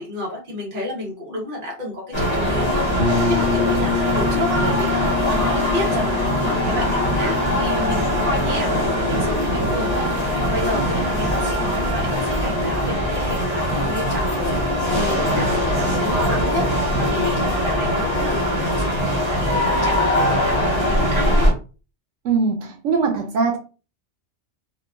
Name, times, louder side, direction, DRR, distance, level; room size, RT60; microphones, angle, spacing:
voice 1, 0.0-10.1 10.4-21.5, left 1 dB, 45° right, 1.3 m, -30 dB
sound 1, 2.1-21.5, equal, 25° left, 0.9 m, -21 dB
sound 2, 3.0-12.7, left 7 dB, 65° left, 0.8 m, -29 dB
voice 2, 22.2-23.6, right 4 dB, 90° right, 0.9 m, -21 dB
2.8 x 2.2 x 2.4 m
omnidirectional pair, 1.2 m